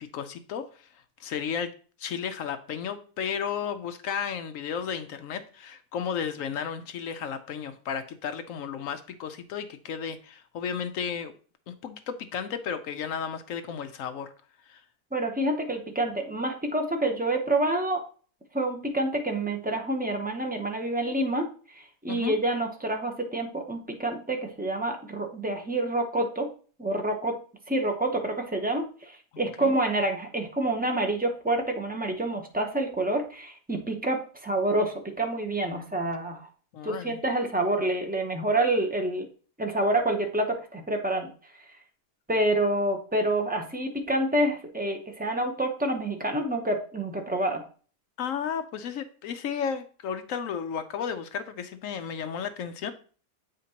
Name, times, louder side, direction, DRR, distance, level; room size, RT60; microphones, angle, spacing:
voice 1, 0.1-0.9 1.2-1.7 2.0-11.3 11.7-14.3 14.7-14.8 22.1-22.4 29.6-29.7 36.7-37.2 48.2-52.9, left 7 dB, 65° left, 9 dB, 0.9 m, -33 dB
voice 2, 15.1-18.0 18.5-21.5 21.7-26.5 26.8-27.4 27.7-36.5 36.8-39.3 39.6-41.3 42.3-47.6, right 1 dB, 15° right, 3 dB, 0.3 m, -27 dB
8.3 x 5.1 x 2.8 m, 0.40 s
omnidirectional pair, 1.7 m